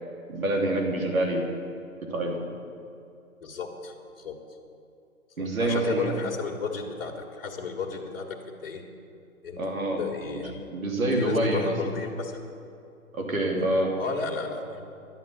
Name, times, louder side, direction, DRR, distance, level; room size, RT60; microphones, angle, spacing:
voice 1, 0.3-1.5 2.1-2.5 5.4-6.1 9.6-10.0 10.7-11.7 13.1-13.9, right 1 dB, 70° right, 1 dB, 2.8 m, -26 dB
voice 2, 3.4-4.4 5.4-8.8 9.4-9.6 10.0-10.7 11.1-12.5 14.0-14.8, left 4 dB, 40° left, 0 dB, 1.8 m, -33 dB
11.5 x 9.0 x 6.8 m, 2.6 s
hypercardioid pair, 150°, 42 cm